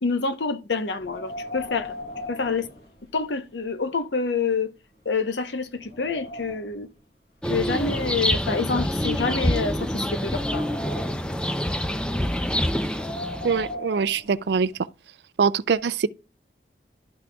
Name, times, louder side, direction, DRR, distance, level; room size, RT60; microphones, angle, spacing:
voice 1, 0.0-1.9 2.3-2.7 3.1-4.7 5.0-6.9 7.5-10.6, left 4 dB, 85° left, 0.8 m, -27 dB
Wind, 0.9-3.5 3.9-4.0 4.7-4.8 5.3-6.9 7.7-9.3 9.8-11.4 12.7-14.8, left 1 dB, 60° left, 1.6 m, -39 dB
sound 1, 7.4-13.7, equal, 5° left, 0.4 m, -26 dB
voice 2, 13.4-14.7 15.4-16.1, right 5 dB, 70° right, 0.4 m, -23 dB
12.0 x 6.0 x 2.3 m
head